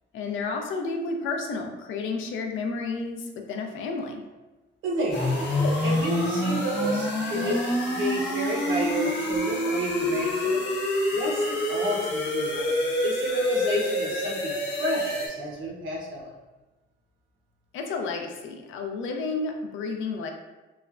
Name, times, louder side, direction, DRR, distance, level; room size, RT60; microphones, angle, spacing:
voice 1, 0.1-4.2 5.6-5.8 6.6-6.7 7.4-7.6 17.7-20.3, left 4 dB, 80° left, 4 dB, 0.4 m, -31 dB
voice 2, 4.8-5.5 5.8-10.7 11.1-16.3, right 1 dB, 80° right, -4 dB, 0.9 m, -30 dB
sound 1, 5.1-15.3, left 1 dB, 60° left, 0.8 m, -27 dB
3.1 x 2.2 x 2.4 m, 1.1 s
cardioid pair, 90°, 20 cm